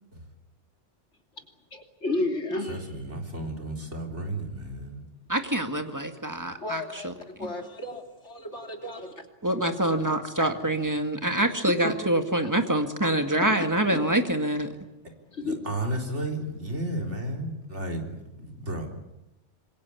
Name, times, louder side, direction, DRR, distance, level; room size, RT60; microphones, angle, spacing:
voice 1, 1.7-2.9 6.6-7.1 7.4-9.3 11.8-11.9 15.3-15.6, left 2 dB, 70° left, 3.4 m, -32 dB
voice 2, 2.7-5.1 15.4-18.9, right 1 dB, 70° right, 4.1 m, -33 dB
voice 3, 5.3-7.1 9.4-14.7, right 1 dB, 15° right, 1.9 m, -26 dB
26.0 x 22.0 x 8.6 m
omnidirectional pair, 1.2 m